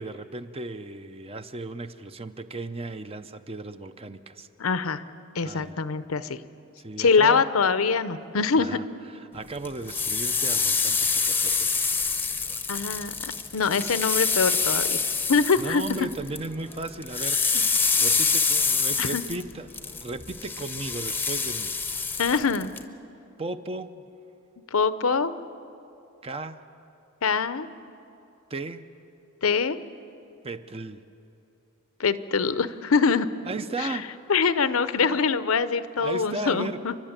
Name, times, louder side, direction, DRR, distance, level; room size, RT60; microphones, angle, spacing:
voice 1, 0.0-4.5 5.4-5.8 6.8-7.4 8.6-11.8 15.6-21.8 22.1-22.2 23.4-24.1 26.2-26.6 28.5-28.9 30.4-31.0 33.4-34.1 35.0-35.3 36.0-36.8, right 2 dB, 25° right, 10 dB, 0.6 m, -36 dB
voice 2, 4.6-5.0 5.3-6.4 7.0-8.7 12.7-15.0 15.3-16.1 19.0-19.2 22.2-22.7 24.7-25.3 27.2-27.7 29.4-29.8 32.0-33.3 33.8-33.9 34.3-36.9, left 5 dB, 75° left, 14 dB, 0.7 m, -24 dB
sound 1, 9.6-16.5 16.7-22.8, left 5 dB, 10° left, 0.8 m, -26 dB
30.0 x 11.5 x 9.0 m, 2.8 s
head